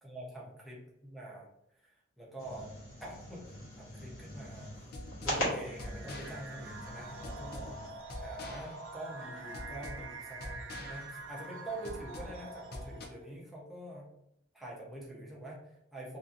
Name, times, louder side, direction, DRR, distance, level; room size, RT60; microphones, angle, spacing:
voice 1, 0.0-1.5 1.8-2.7 3.0-3.5 3.8-4.9 5.2-14.1 14.5-16.2, right 1 dB, ahead, -5 dB, 0.6 m, -45 dB
sound 1, 2.4-7.9, equal, 85° left, 1.1 m, -41 dB
sound 2, 4.7-13.1, left 1 dB, 50° left, 0.5 m, -46 dB
sound 3, 5.7-13.3, right 2 dB, 60° right, 0.3 m, -46 dB
2.7 x 2.5 x 2.4 m, 0.82 s
head